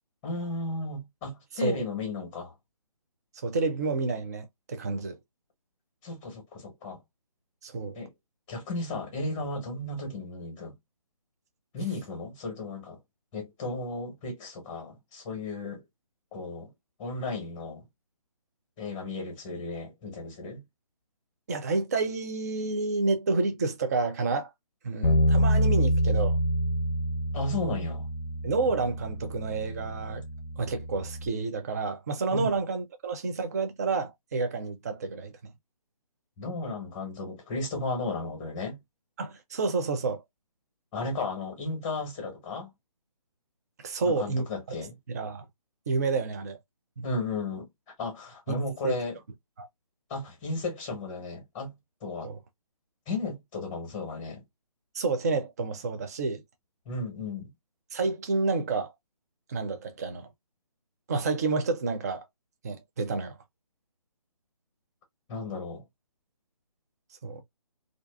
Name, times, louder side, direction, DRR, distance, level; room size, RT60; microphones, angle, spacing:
voice 1, 0.2-2.5 6.0-7.0 7.9-8.1 8.5-10.7 11.7-13.0 13.3-15.8 16.3-16.7 17.0-17.8 18.8-20.6 27.3-28.1 32.3-32.6 36.4-38.8 40.9-42.7 44.0-45.0 47.0-47.7 48.0-49.2 50.1-51.8 52.0-52.3 53.1-54.4 56.8-57.5 65.3-65.8, left 3 dB, 15° left, 1.1 m, -34 dB
voice 2, 3.4-5.2 7.6-8.0 21.5-24.5 24.8-26.4 28.4-30.2 30.6-35.3 39.2-40.2 43.8-44.5 45.1-45.4 45.9-46.6 47.0-47.1 48.5-49.0 49.6-49.7 52.2-52.4 54.9-56.4 57.9-58.9 59.5-60.3 61.1-62.2 62.6-63.4 67.2-67.4, right 3 dB, 25° right, 0.4 m, -29 dB
Bass guitar, 25.0-31.3, equal, 40° left, 0.7 m, -27 dB
2.4 x 2.3 x 2.2 m
figure-of-eight pair, 150°, 19 cm